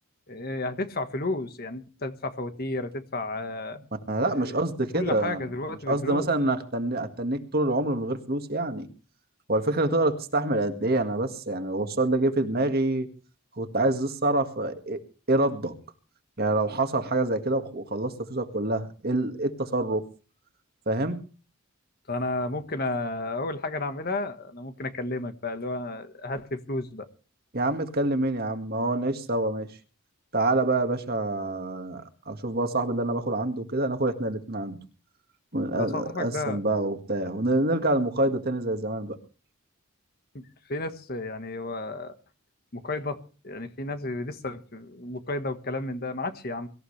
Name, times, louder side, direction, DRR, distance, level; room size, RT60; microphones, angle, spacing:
voice 1, 0.3-3.8 4.2-4.6 4.9-6.3 22.1-27.1 35.8-36.6 40.3-42.1 42.7-46.7, left 2 dB, 45° left, 1.5 m, -32 dB
voice 2, 4.1-5.5 5.9-8.9 9.5-13.1 13.6-15.0 15.3-15.7 16.4-20.0 20.9-21.2 27.5-29.7 30.3-34.8 35.5-39.2, right 2 dB, 45° right, 1.9 m, -26 dB
23.5 x 14.5 x 3.3 m
head